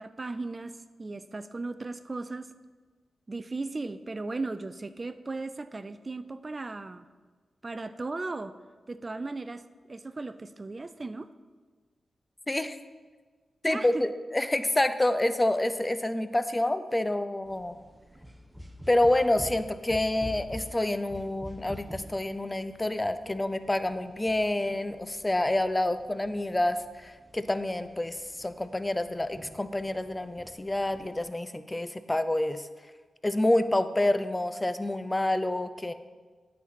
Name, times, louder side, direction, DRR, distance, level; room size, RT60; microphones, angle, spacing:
voice 1, 0.0-2.5 3.3-7.1 7.6-8.6 8.9-11.3 13.6-14.1, right 3 dB, 35° right, 12 dB, 0.3 m, -36 dB
voice 2, 12.5-12.8 13.6-17.8 18.9-32.7 33.2-35.9, left 1 dB, 20° left, 11 dB, 0.5 m, -28 dB
sound 1, 17.5-31.3, equal, 5° right, 1.0 m, -47 dB
9.0 x 4.1 x 5.9 m, 1.4 s
cardioid pair, 55°, 0 cm